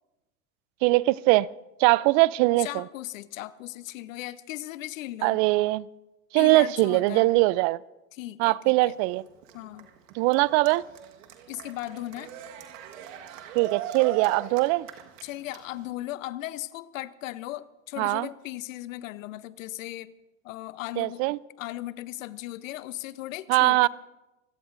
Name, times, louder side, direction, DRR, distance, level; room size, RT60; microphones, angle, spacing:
voice 1, 0.8-1.5 1.8-2.8 5.2-5.9 6.3-7.8 8.4-9.2 10.1-10.8 13.6-14.9 18.0-18.3 21.0-21.4 23.5-23.9, right 21 dB, 60° right, 0.5 m, -21 dB
voice 2, 2.6-5.4 6.3-7.3 8.1-8.9 9.5-9.9 11.5-12.3 15.2-20.1 20.4-21.2 21.6-23.9, left 15 dB, 80° left, 0.8 m, -37 dB
Cheering, 8.9-15.9, right 9 dB, 80° right, 1.5 m, -41 dB
26.0 x 17.0 x 2.6 m
hypercardioid pair, 95°, 38 cm